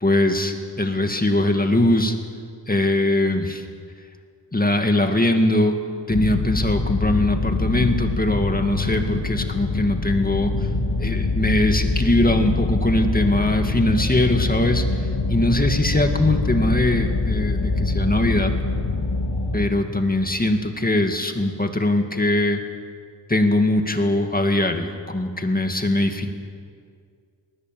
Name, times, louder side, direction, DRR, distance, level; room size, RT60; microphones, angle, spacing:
voice 1, 0.0-2.1 2.7-3.6 4.5-5.7 6.1-10.5 11.0-14.8 15.3-18.5 19.5-22.6 23.3-26.3, left 1 dB, 20° left, 5 dB, 2.1 m, -21 dB
sound 1, 6.1-19.6, left 3 dB, 60° left, 3.0 m, -24 dB
20.0 x 19.0 x 7.7 m, 2.2 s
cardioid pair, 75°, 44 cm